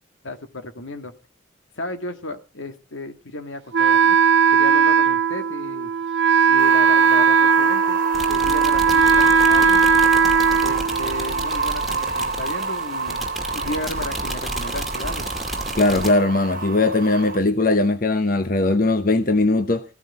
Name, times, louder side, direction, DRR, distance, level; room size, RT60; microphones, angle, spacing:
voice 1, 0.2-1.1 1.8-4.2 4.5-5.9 6.5-8.0 8.3-9.9 10.6-13.3 13.5-15.3, left 2 dB, 85° left, 2.1 m, -33 dB
Wind instrument woodwind instrument, 3.7-11.5, right 6 dB, 70° right, 0.7 m, -17 dB
sound 1, 6.6-17.4, right 4 dB, 45° right, 1.5 m, -28 dB
sound 2, 8.1-16.1, right 1 dB, ahead, 2.3 m, -32 dB
voice 2, 15.8-19.8, left 2 dB, 45° left, 1.0 m, -19 dB
15.5 x 13.5 x 4.3 m
head